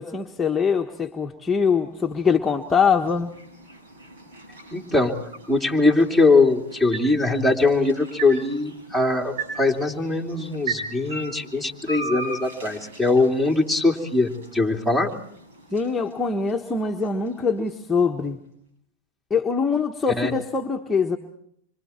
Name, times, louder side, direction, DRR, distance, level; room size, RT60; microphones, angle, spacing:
voice 1, 0.0-3.3 15.7-18.4 19.3-21.2, left 5 dB, 15° left, 1 dB, 1.3 m, -23 dB
sound 1, 1.8-18.0, right 3 dB, 80° right, 7.0 m, -39 dB
voice 2, 4.7-5.2 5.5-15.1 20.2-20.3, left 3 dB, 5° right, 5 dB, 3.0 m, -21 dB
27.0 x 25.0 x 4.4 m, 0.68 s
hypercardioid pair, 115°, 0 cm